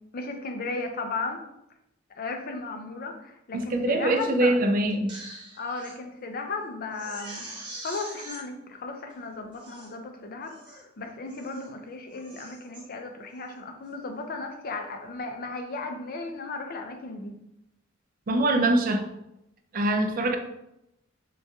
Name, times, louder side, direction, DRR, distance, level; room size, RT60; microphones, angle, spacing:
voice 1, 0.1-1.4 2.2-4.5 5.6-17.4, left 3 dB, 45° left, 4 dB, 0.5 m, -35 dB
voice 2, 3.5-5.2 18.3-19.1 19.7-20.4, right 1 dB, 45° right, 5 dB, 0.4 m, -23 dB
Crying sobbing, 4.9-6.0 6.4-6.5 6.9-8.4 9.1-9.2 9.5-9.9 10.4-10.8 11.3-11.7 12.1-12.8 13.3-13.6, right 2 dB, 25° right, 0.8 m, -43 dB
4.7 x 2.3 x 2.7 m, 0.85 s
head